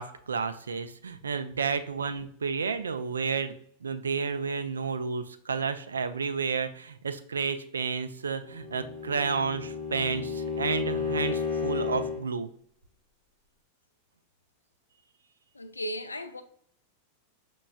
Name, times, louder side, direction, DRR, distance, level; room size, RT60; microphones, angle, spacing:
voice 1, 0.0-3.5 3.8-12.5, right 5 dB, 70° right, 0.3 m, -31 dB
Bowed string instrument, 8.4-12.3, left 5 dB, 30° left, 0.8 m, -32 dB
voice 2, 15.5-16.4, equal, 80° left, 0.3 m, -36 dB
5.8 x 2.3 x 2.3 m
figure-of-eight pair, 90°, 0 cm